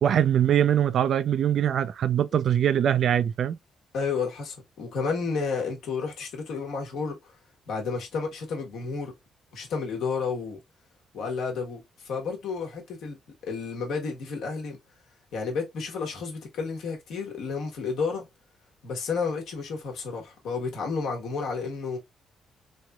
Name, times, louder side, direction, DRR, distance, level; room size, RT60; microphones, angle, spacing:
voice 1, 0.0-3.6, right 10 dB, 65° right, 0.3 m, -22 dB
voice 2, 3.9-7.3 7.7-9.1 9.5-10.6 11.1-13.2 13.4-14.8 15.3-18.3 18.8-22.0, left 5 dB, 70° left, 1.1 m, -31 dB
3.1 x 2.8 x 2.3 m
hypercardioid pair, 50°, 0 cm